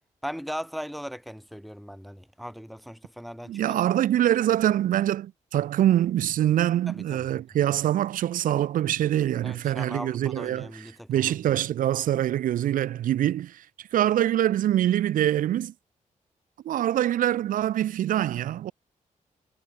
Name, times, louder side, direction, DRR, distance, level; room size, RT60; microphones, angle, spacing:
voice 1, 0.2-3.8 6.9-7.3 9.4-11.3, equal, ahead, 1.1 m, -38 dB
voice 2, 3.5-10.8 11.1-13.6 13.9-15.7 16.7-18.7, right 12 dB, 90° right, 0.5 m, -24 dB
cardioid pair, 95°, 14 cm